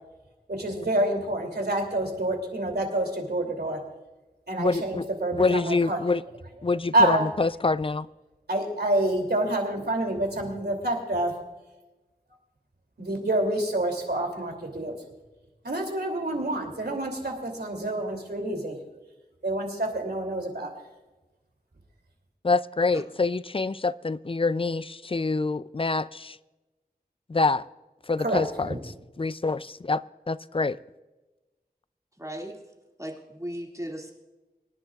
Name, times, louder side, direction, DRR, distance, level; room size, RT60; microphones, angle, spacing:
voice 1, 0.5-3.8 4.5-6.0 6.9-7.2 8.5-11.3 13.0-15.0 15.6-18.7 19.4-20.7 28.2-28.8, right 1 dB, 75° right, 2.9 m, -27 dB
voice 2, 4.6-5.1 5.3-6.2 6.6-8.1 22.4-26.4 27.3-27.6 28.1-30.0 30.3-30.8, left 3 dB, 35° left, 0.4 m, -26 dB
voice 3, 32.2-32.5 33.0-34.1, equal, 20° right, 2.3 m, -36 dB
25.0 x 10.5 x 2.4 m
wide cardioid pair, 50°, 17 cm